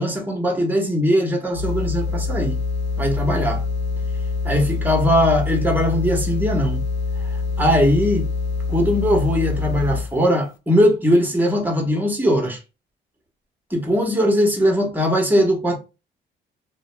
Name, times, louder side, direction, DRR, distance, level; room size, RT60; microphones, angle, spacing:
voice 1, 0.0-2.6 3.0-3.6 4.4-6.8 7.6-8.3 8.7-12.6 13.7-15.8, equal, 10° right, 0.9 m, -20 dB
sound 1, 1.5-10.2, left 4 dB, 85° left, 0.5 m, -25 dB
2.2 x 2.1 x 3.1 m
cardioid pair, 90°, 20 cm